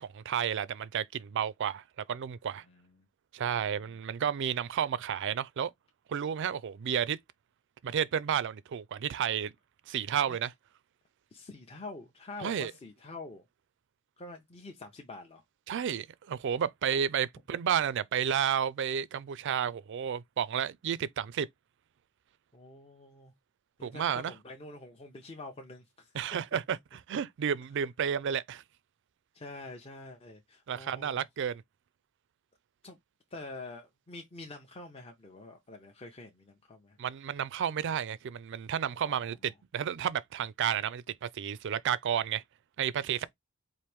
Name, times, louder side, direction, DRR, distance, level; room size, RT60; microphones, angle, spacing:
voice 1, 0.0-1.8 2.1-2.6 3.3-5.7 6.1-7.2 7.8-9.5 9.9-10.5 12.4-12.7 15.7-21.5 23.8-24.3 26.1-26.8 27.1-28.6 30.7-31.6 37.0-42.4 42.8-43.3, right 8 dB, 60° right, 0.4 m, -31 dB
voice 2, 2.6-3.0 3.6-4.0 10.3-10.4 11.3-13.4 14.2-15.4 16.9-17.0 22.5-23.3 23.8-26.2 29.3-31.2 32.8-33.0 33.3-37.0 39.0-39.4 43.2-43.3, left 2 dB, 25° left, 0.6 m, -46 dB
4.5 x 2.5 x 3.4 m
head